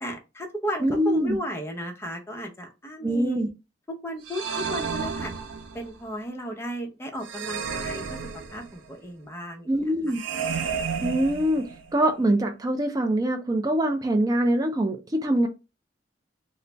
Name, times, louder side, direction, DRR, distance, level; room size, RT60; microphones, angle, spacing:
voice 1, 0.0-3.5 4.0-5.3 5.7-8.2 8.5-9.7, equal, 15° left, 0.7 m, -34 dB
voice 2, 0.8-1.4 3.0-3.5 9.7-10.2 11.0-15.5, right 1 dB, 20° right, 0.4 m, -24 dB
sound 1, 4.2-5.9 7.2-8.9 10.1-12.0, right 6 dB, 85° right, 0.5 m, -32 dB
3.9 x 2.0 x 3.3 m
head